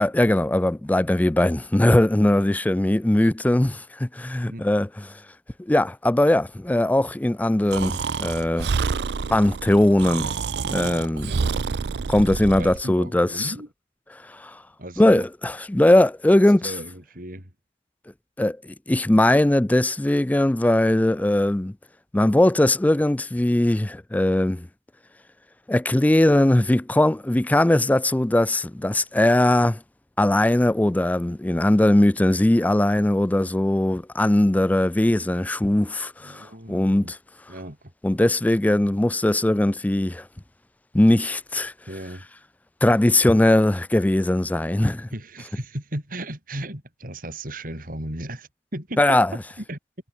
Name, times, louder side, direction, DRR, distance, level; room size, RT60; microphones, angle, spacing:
voice 1, 0.0-5.2 5.6-8.7 9.3-10.3 10.7-11.3 12.1-13.5 14.3-14.6 15.0-16.7 18.4-21.7 22.1-24.7 25.7-29.8 30.2-37.2 38.0-40.2 40.9-41.7 42.8-45.1 49.0-49.3, left 1 dB, 10° left, 0.3 m, -20 dB
Breathing, 7.7-12.8, right 5 dB, 70° right, 0.5 m, -28 dB
voice 2, 11.2-11.7 12.6-13.7 14.8-15.2 16.6-17.5 36.2-37.1 37.5-37.9 41.9-42.2 45.1-49.8, right 1 dB, 50° right, 7.5 m, -36 dB
head